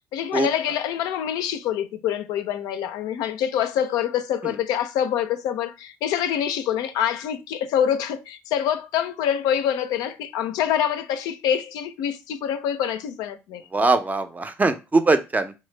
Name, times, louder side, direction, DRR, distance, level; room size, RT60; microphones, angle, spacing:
voice 1, 0.1-13.6, left 9 dB, 70° left, 0.4 m, -25 dB
voice 2, 13.7-15.5, right 3 dB, 25° right, 0.5 m, -21 dB
3.1 x 2.1 x 3.2 m
hypercardioid pair, 50°, 7 cm